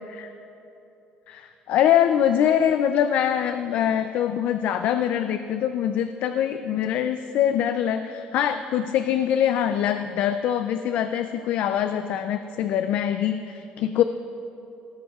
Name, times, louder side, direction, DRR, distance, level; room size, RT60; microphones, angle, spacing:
voice 1, 1.3-14.0, left 10 dB, 55° left, 9 dB, 0.4 m, -23 dB
18.5 x 13.5 x 2.4 m, 3.0 s
cardioid pair, 165°, 3 cm